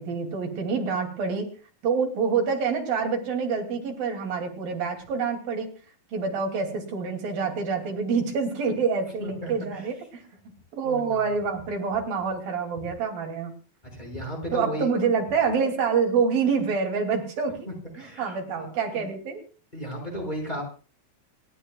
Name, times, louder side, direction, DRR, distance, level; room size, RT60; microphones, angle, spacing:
voice 1, 0.0-1.5 1.8-5.7 6.1-10.2 10.7-13.5 14.5-17.7 18.0-19.4, right 5 dB, 80° right, 2 dB, 4.5 m, -27 dB
voice 2, 9.2-9.8 10.8-11.3 13.9-14.9 18.0-19.1 19.7-20.6, equal, 10° left, 0 dB, 5.6 m, -35 dB
27.5 x 13.5 x 2.3 m, 0.37 s
omnidirectional pair, 4.0 m